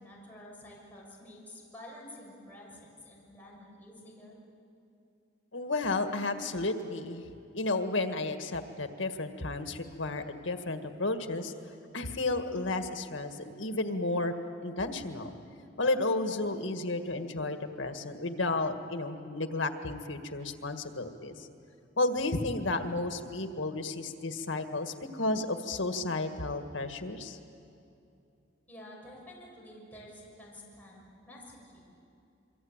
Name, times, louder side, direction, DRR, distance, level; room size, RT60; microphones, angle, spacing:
voice 1, 0.0-4.4 28.7-31.8, left 1 dB, 10° left, -4 dB, 6.6 m, -50 dB
voice 2, 5.5-7.2 7.5-11.5 11.9-14.3 14.6-15.3 15.8-21.5 22.0-27.4, left 2 dB, 90° left, 7 dB, 1.8 m, -32 dB
27.0 x 24.0 x 9.0 m, 2.7 s
head